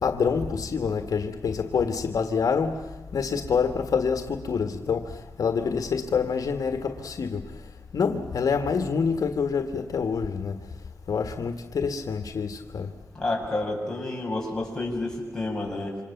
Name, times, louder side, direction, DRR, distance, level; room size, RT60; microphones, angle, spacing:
voice 1, 0.0-2.8 3.1-5.1 5.4-7.4 7.9-10.5 11.1-12.9, left 5 dB, 75° left, 1.8 m, -26 dB
voice 2, 13.1-16.0, left 2 dB, 10° left, 7.5 m, -30 dB
28.5 x 26.5 x 7.3 m
wide cardioid pair, 165°, 6 cm